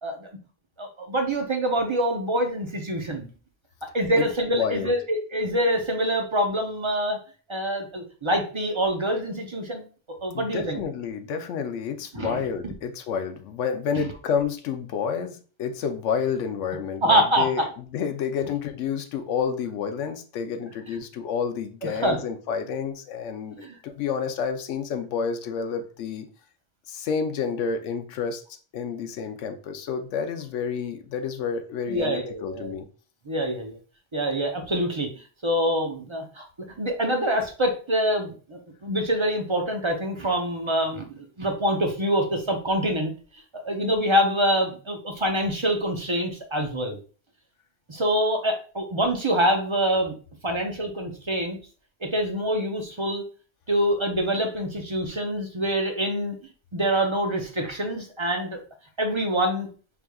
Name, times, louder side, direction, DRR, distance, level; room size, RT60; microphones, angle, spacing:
voice 1, 0.8-3.3 3.9-7.2 7.5-9.8 10.2-10.8 12.1-12.4 13.9-14.0 17.0-17.5 22.0-22.2 23.6-23.8 31.9-32.7 33.3-33.8 34.1-35.1 35.4-36.4 36.8-41.0 41.4-43.1 43.6-47.0 47.9-50.1 50.4-51.6 52.0-53.2 53.7-56.4 56.7-58.6 59.0-59.7, equal, 35° right, 3 dB, 0.5 m, -25 dB
voice 2, 4.5-4.9 10.3-23.6 23.8-26.3 26.9-28.4 28.7-32.9, left 6 dB, 85° left, 8 dB, 0.9 m, -29 dB
4.9 x 3.4 x 2.2 m, 0.38 s
omnidirectional pair, 1.2 m